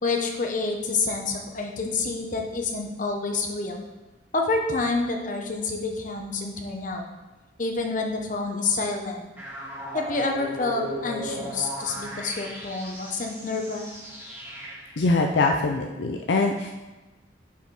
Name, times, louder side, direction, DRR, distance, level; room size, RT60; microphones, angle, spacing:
voice 1, 0.0-3.8 4.3-7.1 7.6-9.3 9.9-13.9, left 3 dB, 45° left, 2 dB, 0.8 m, -28 dB
sound 1, 9.4-15.1, right 1 dB, 10° right, 2.0 m, -37 dB
voice 2, 15.0-16.7, left 3 dB, 65° left, 3 dB, 0.4 m, -23 dB
5.9 x 4.2 x 4.7 m, 1.1 s
head